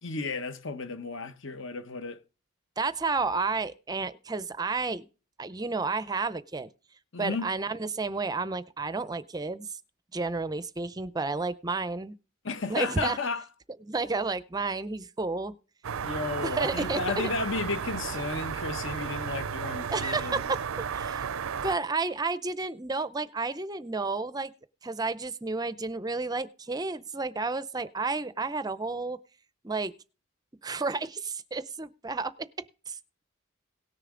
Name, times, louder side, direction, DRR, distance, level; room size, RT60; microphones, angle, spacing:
voice 1, 0.0-2.2 7.1-7.5 12.4-13.4 16.0-20.4, left 3 dB, 60° left, 1.0 m, -33 dB
voice 2, 2.8-5.1 5.4-6.7 7.2-9.8 10.1-12.1 12.7-13.2 13.8-15.5 16.4-17.0 19.9-21.3 21.6-24.5 24.8-29.2 29.6-29.9 30.6-32.3 32.9-33.0, right 3 dB, 20° right, 0.5 m, -31 dB
sound 1, 15.8-21.8, right 7 dB, 75° right, 0.5 m, -34 dB
18.0 x 6.7 x 3.8 m
head